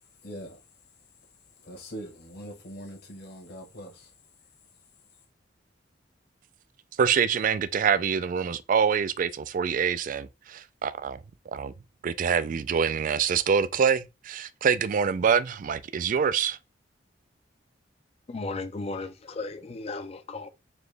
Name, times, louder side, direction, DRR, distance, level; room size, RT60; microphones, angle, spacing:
voice 1, 0.2-0.6 1.6-4.1, equal, 60° left, 1.2 m, -42 dB
voice 2, 7.0-11.2 11.5-11.7 12.0-16.6, right 7 dB, 45° right, 0.3 m, -25 dB
voice 3, 18.3-20.5, left 3 dB, 35° left, 0.5 m, -35 dB
4.2 x 2.9 x 3.3 m
head